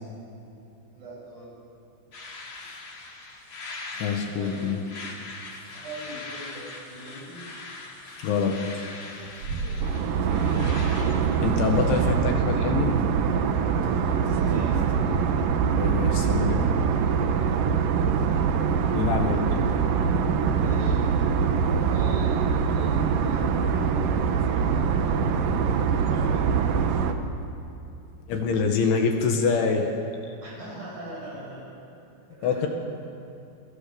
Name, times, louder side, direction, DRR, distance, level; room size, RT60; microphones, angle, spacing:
voice 1, 0.9-1.6 4.3-4.8 5.7-7.5 10.0-10.7 14.2-14.9 20.5-21.0 21.9-23.5 24.4-25.4 26.1-26.5 30.4-31.7 32.3-32.7, right 1 dB, 35° right, -4 dB, 9.3 m, -41 dB
sound 1, 2.1-12.0, left 3 dB, 35° left, 3.2 m, -41 dB
voice 2, 4.0-4.8 8.2-8.6 11.4-12.9 15.8-16.7 18.9-19.4 28.3-29.9 32.4-32.7, left 5 dB, 70° left, 3 dB, 4.0 m, -25 dB
sound 2, 9.0-14.9, right 4 dB, 55° right, 2.8 m, -38 dB
sound 3, 9.8-27.1, right 6 dB, 85° right, 1.9 m, -23 dB
28.0 x 23.0 x 7.0 m, 2.8 s
omnidirectional pair, 5.9 m